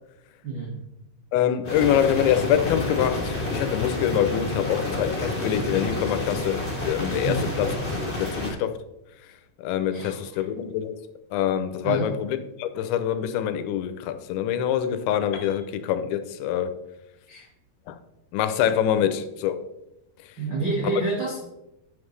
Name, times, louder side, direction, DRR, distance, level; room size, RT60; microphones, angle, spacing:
voice 1, 0.4-0.7 7.2-7.4 9.9-10.4 11.8-12.1 17.3-17.5 20.4-21.4, right 3 dB, 80° right, 1.0 m, -29 dB
voice 2, 1.3-7.7 8.1-8.8 9.6-11.0 11.3-16.7 17.9-18.0 18.3-19.6 20.2-20.4, left 10 dB, 90° left, 3.0 m, -25 dB
sound 1, 1.6-8.5, left 2 dB, 15° left, 2.8 m, -29 dB
Piano, 15.3-19.3, left 5 dB, 65° left, 2.4 m, -49 dB
9.3 x 7.2 x 3.2 m
omnidirectional pair, 5.1 m